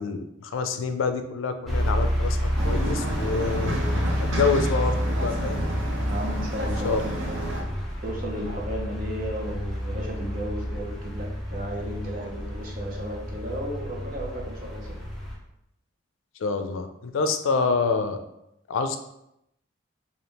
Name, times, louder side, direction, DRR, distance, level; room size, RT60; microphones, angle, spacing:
voice 1, 0.0-3.8 4.2-5.7 6.8-7.0 16.4-18.2 18.7-19.0, left 4 dB, 85° left, 8 dB, 0.4 m, -27 dB
sound 1, 1.6-15.4, equal, ahead, 0.6 m, -29 dB
sound 2, 2.6-7.6, right 1 dB, 80° right, 0.7 m, -32 dB
voice 2, 6.1-7.3 8.0-15.0, equal, 45° right, -1 dB, 0.8 m, -34 dB
3.4 x 2.4 x 4.1 m, 0.80 s
head